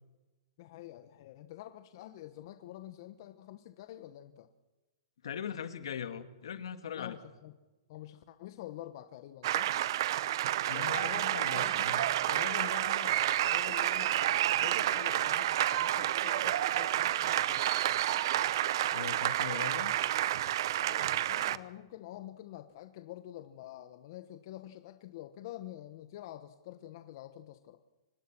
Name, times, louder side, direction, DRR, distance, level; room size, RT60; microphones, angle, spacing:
voice 1, 0.6-4.5 6.9-7.5 7.9-9.8 10.7-17.7 20.8-27.8, left 13 dB, 50° left, 9 dB, 1.2 m, -47 dB
voice 2, 5.2-7.2 10.7-12.1 18.9-19.9 21.2-21.3, left 8 dB, 75° left, 10 dB, 2.1 m, -40 dB
sound 1, 9.4-21.6, right 13 dB, 60° right, 0.8 m, -30 dB
25.0 x 19.0 x 6.2 m, 1.1 s
hypercardioid pair, 140°, 3 cm